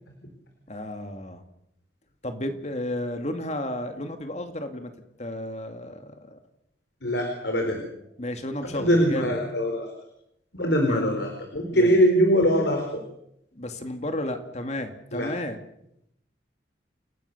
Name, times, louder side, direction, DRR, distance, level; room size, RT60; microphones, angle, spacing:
voice 1, 0.7-1.4 2.2-4.9 5.2-6.4 8.2-9.3 10.9-11.1 11.7-11.9 13.5-15.6, left 1 dB, 40° left, 6 dB, 2.4 m, -33 dB
voice 2, 7.0-7.8 8.6-9.9 10.5-13.0 15.1-15.3, equal, 75° left, 3 dB, 4.4 m, -22 dB
29.5 x 17.5 x 6.9 m, 0.79 s
head